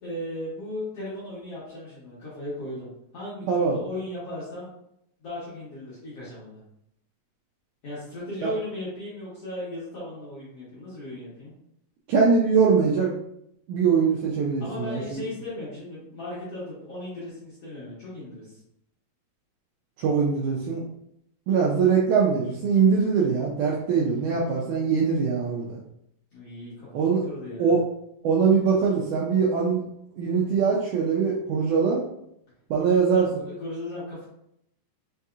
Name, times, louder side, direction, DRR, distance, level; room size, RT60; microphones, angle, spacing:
voice 1, 0.0-4.7 5.2-6.6 7.8-11.5 14.6-18.6 23.9-24.5 26.3-27.7 32.7-34.3, left 1 dB, 60° left, -9 dB, 1.7 m, -37 dB
voice 2, 12.1-13.1 13.7-15.2 20.0-20.8 21.5-25.8 26.9-27.2 27.6-27.8 28.2-29.8 30.2-32.0 32.7-33.3, right 5 dB, 90° right, -3 dB, 1.8 m, -22 dB
5.5 x 2.7 x 2.4 m, 0.76 s
omnidirectional pair, 4.1 m